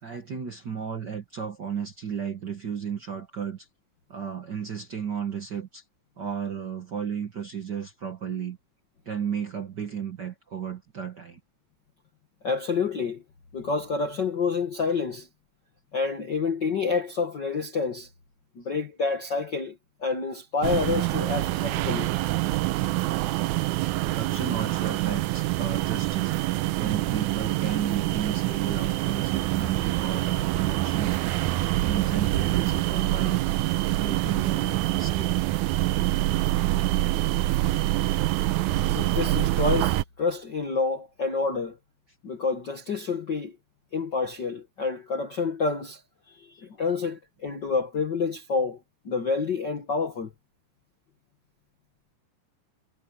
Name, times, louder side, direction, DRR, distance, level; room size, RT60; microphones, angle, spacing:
voice 1, 0.0-3.7 4.1-5.8 6.2-8.6 9.0-11.4 23.6-26.3 26.7-31.4 31.8-33.4 33.9-35.3, right 7 dB, 60° right, 1.1 m, -33 dB
voice 2, 12.4-13.2 13.5-15.3 15.9-18.1 18.5-22.1 38.8-41.8 42.2-43.6 43.9-46.0 46.3-48.8 49.0-50.3, left 4 dB, 45° left, 1.5 m, -28 dB
sound 1, 20.6-40.0, right 17 dB, 80° right, 1.8 m, -26 dB
omnidirectional pair, 3.9 m